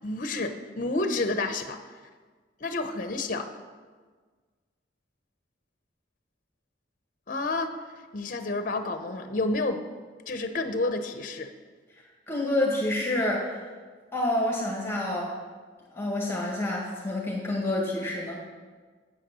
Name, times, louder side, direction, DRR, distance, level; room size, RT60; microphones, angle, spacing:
voice 1, 0.0-2.1 2.6-3.5 7.3-9.8 10.3-11.5, left 2 dB, 45° left, 8 dB, 0.7 m, -30 dB
voice 2, 12.3-13.6 14.1-15.4 15.9-18.4, left 1 dB, 15° left, -3 dB, 1.7 m, -28 dB
9.0 x 7.5 x 6.1 m, 1.5 s
head